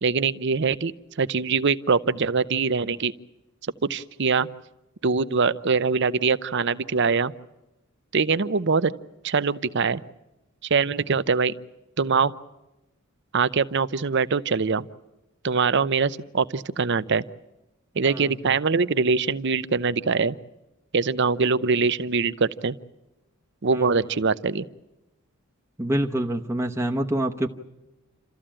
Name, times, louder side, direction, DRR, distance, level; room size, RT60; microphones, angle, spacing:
voice 1, 0.0-0.9 1.2-3.1 3.9-4.5 5.0-7.3 8.1-8.9 9.2-10.0 10.7-11.5 12.0-12.3 13.3-14.9 15.4-17.2 18.0-20.4 20.9-22.8 23.6-24.6, right 5 dB, 55° right, 15 dB, 0.7 m, -23 dB
voice 2, 18.0-18.3 23.7-24.0 25.8-27.5, right 1 dB, 10° right, 1 dB, 0.9 m, -26 dB
28.5 x 14.0 x 8.9 m, 1.0 s
head